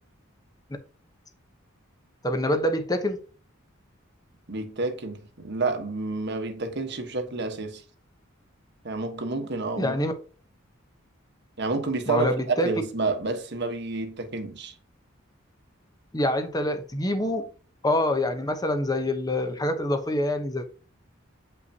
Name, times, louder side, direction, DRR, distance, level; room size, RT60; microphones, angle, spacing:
voice 1, 2.2-3.2 9.8-10.1 12.1-12.7 16.1-17.5 17.8-20.7, left 1 dB, 20° left, 0.9 m, -25 dB
voice 2, 4.5-7.8 8.8-10.0 11.6-14.7, right 3 dB, 55° right, 1.3 m, -29 dB
8.1 x 5.6 x 2.8 m
head